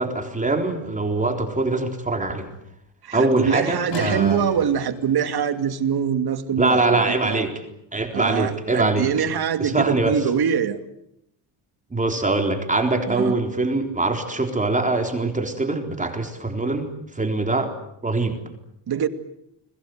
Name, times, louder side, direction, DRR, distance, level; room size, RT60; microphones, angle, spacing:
voice 1, 0.0-2.5 3.1-4.4 6.6-7.6 7.9-9.1 9.6-10.1 11.9-17.7 18.0-18.4, right 2 dB, 15° right, 4 dB, 3.9 m, -23 dB
voice 2, 3.0-7.5 8.1-10.8 13.1-13.4 18.9-19.1, right 8 dB, 55° right, 9 dB, 2.6 m, -24 dB
sound 1, 3.9-9.5, left 5 dB, 65° left, 6.0 m, -40 dB
30.0 x 22.0 x 8.0 m, 0.77 s
cardioid pair, 120°, 44 cm